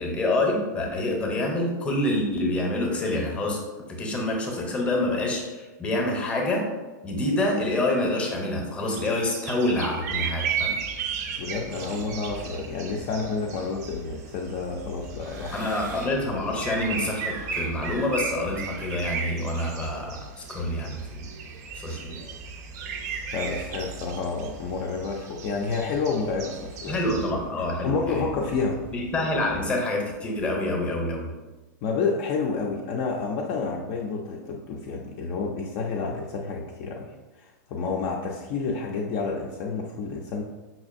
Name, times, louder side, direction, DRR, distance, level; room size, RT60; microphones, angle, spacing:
voice 1, 0.0-3.6 3.9-6.7 7.0-10.7 15.5-21.3 21.7-22.2 26.9-28.3 28.9-31.3, left 1 dB, 10° left, 0 dB, 0.7 m, -27 dB
sound 1, 8.9-27.3, right 6 dB, 60° right, 0.5 m, -35 dB
sound 2, 10.0-29.7, right 2 dB, 20° right, 0.6 m, -45 dB
voice 2, 11.4-15.7 23.3-27.0 27.8-28.8 31.8-37.1 37.4-40.4, left 4 dB, 40° left, -1 dB, 0.4 m, -29 dB
sound 3, 15.1-16.3 16.6-19.7, right 2 dB, 85° right, 1.0 m, -48 dB
5.5 x 2.5 x 2.5 m, 1.2 s
supercardioid pair, 140°, 10 cm